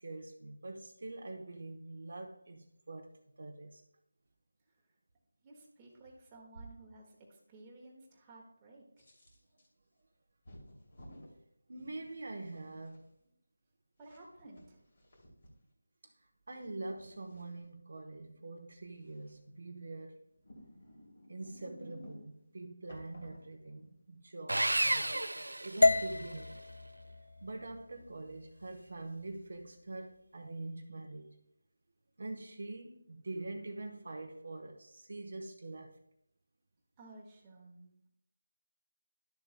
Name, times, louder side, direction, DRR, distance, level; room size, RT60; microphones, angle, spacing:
voice 1, 0.0-3.1 3.4-3.8 11.7-13.0 16.0-16.1 16.5-20.3 21.3-26.6 27.4-31.4 32.2-36.0, right 2 dB, 55° right, 0.9 m, -44 dB
voice 2, 5.4-9.1 14.0-14.8 37.0-38.1, right 2 dB, 15° right, 1.5 m, -55 dB
sound 1, 9.0-9.7 10.4-11.3 12.0-13.0 14.0-15.5 16.6-17.6 19.1-19.5 20.3-22.4 22.9-24.0, equal, 45° left, 2.6 m, -55 dB
Sawing, 24.5-26.4, right 1 dB, 85° right, 0.5 m, -32 dB
sound 2, 25.8-29.9, left 2 dB, 75° left, 0.4 m, -33 dB
12.5 x 6.9 x 2.2 m
figure-of-eight pair, 170°, 0 cm